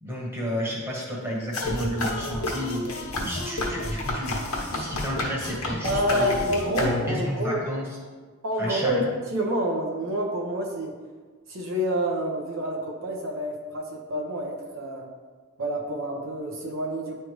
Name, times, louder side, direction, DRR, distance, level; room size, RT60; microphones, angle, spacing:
voice 1, 0.0-2.9 3.2-4.4 4.7-6.3 7.1-7.9 8.6-9.1, equal, 10° right, -4 dB, 1.3 m, -31 dB
sound 1, 1.5-7.3, left 1 dB, 85° left, 1.2 m, -30 dB
voice 2, 5.8-7.6 8.4-9.0 9.3-10.9 11.5-15.1 15.6-17.1, equal, 65° right, -1 dB, 0.9 m, -28 dB
10.0 x 3.4 x 3.1 m, 1.4 s
head